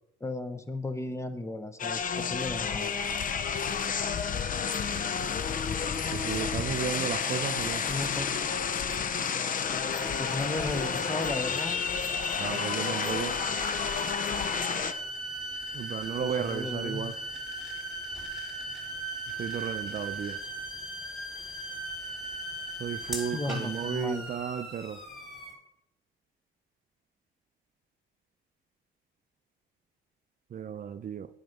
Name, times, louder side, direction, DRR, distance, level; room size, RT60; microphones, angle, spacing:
voice 1, 0.2-2.9 7.9-8.3 10.2-11.8 16.2-17.2 23.3-24.3, left 2 dB, 15° left, 0.9 m, -35 dB
sound 1, 1.8-14.9, left 6 dB, 45° left, 0.6 m, -30 dB
voice 2, 6.1-7.8 12.4-13.3 15.7-17.1 19.4-20.4 22.8-25.0 30.5-31.3, right 8 dB, 45° right, 0.5 m, -33 dB
sound 2, 9.9-25.5, right 2 dB, ahead, 3.2 m, -38 dB
9.1 x 5.8 x 5.3 m
cardioid pair, 90°, 20 cm